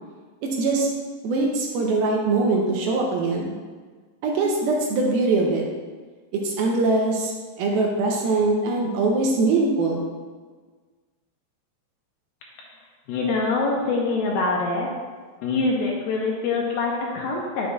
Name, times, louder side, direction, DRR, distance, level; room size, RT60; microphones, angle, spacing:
voice 1, 0.4-0.9 1.2-3.5 4.2-5.6 6.3-7.3 7.6-10.0, right 3 dB, 75° right, 0 dB, 2.4 m, -22 dB
voice 2, 13.1-14.9 15.4-17.7, left 3 dB, 80° left, -2 dB, 2.3 m, -24 dB
8.1 x 6.3 x 2.3 m, 1.4 s
omnidirectional pair, 4.7 m